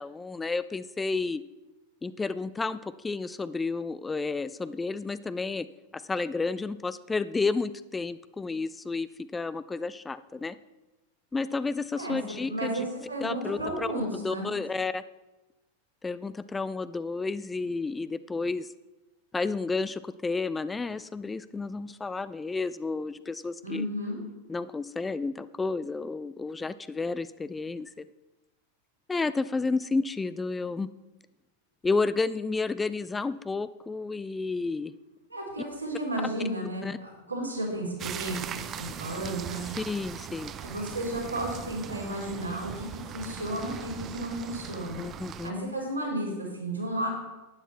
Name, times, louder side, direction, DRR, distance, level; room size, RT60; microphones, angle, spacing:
voice 1, 0.0-1.4 2.0-5.7 5.9-10.6 11.3-12.8 13.2-15.0 16.0-18.7 19.3-23.9 24.5-28.0 29.1-30.9 31.8-34.9 36.8-37.0 39.8-40.5 45.0-45.7, left 3 dB, 10° left, 15 dB, 0.4 m, -31 dB
voice 2, 12.5-14.5 23.6-24.2 35.3-39.6 40.6-45.1 45.4-47.1, right 1 dB, 85° right, -3 dB, 4.1 m, -33 dB
sound 1, 38.0-45.5, right 8 dB, 30° right, 0.6 m, -40 dB
11.5 x 10.0 x 4.4 m, 1.0 s
figure-of-eight pair, 90°, 0 cm